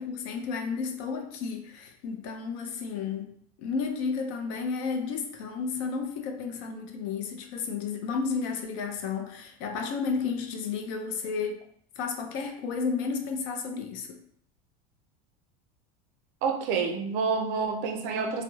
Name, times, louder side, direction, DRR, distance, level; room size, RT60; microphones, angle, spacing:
voice 1, 0.0-3.3 3.6-11.6 12.0-14.2, left 5 dB, 60° left, 0.5 m, -32 dB
voice 2, 16.4-18.4, right 5 dB, 55° right, 0.4 m, -28 dB
2.9 x 2.0 x 2.3 m
supercardioid pair, 160°, 19 cm